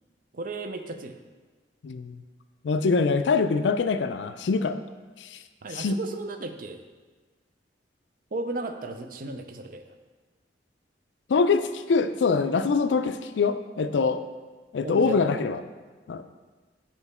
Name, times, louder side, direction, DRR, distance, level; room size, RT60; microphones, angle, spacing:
voice 1, 0.3-1.2 5.6-6.8 8.3-9.9 14.8-15.2, right 2 dB, 50° right, 7 dB, 0.5 m, -34 dB
voice 2, 1.8-2.2 2.6-4.8 5.2-5.4 5.7-5.9 11.3-14.2 14.7-15.6 16.1-16.2, left 4 dB, 85° left, 10 dB, 0.4 m, -24 dB
7.0 x 4.4 x 4.2 m, 1.3 s
head